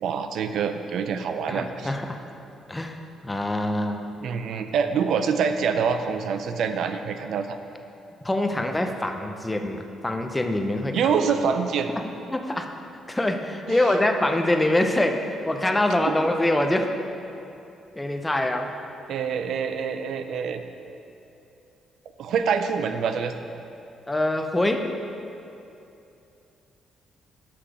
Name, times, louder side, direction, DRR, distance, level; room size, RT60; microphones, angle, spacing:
voice 1, 0.0-1.9 4.2-7.6 10.9-11.9 13.7-14.0 16.1-16.2 19.1-20.6 22.2-23.4, right 6 dB, 75° right, 8 dB, 0.4 m, -26 dB
voice 2, 1.5-2.2 2.7-3.0 3.2-4.2 8.2-11.2 12.3-12.7 13.1-16.9 18.0-18.7 24.1-24.8, left 1 dB, 15° left, 5 dB, 0.6 m, -24 dB
6.5 x 5.9 x 4.9 m, 2.7 s
cardioid pair, 90°, 0 cm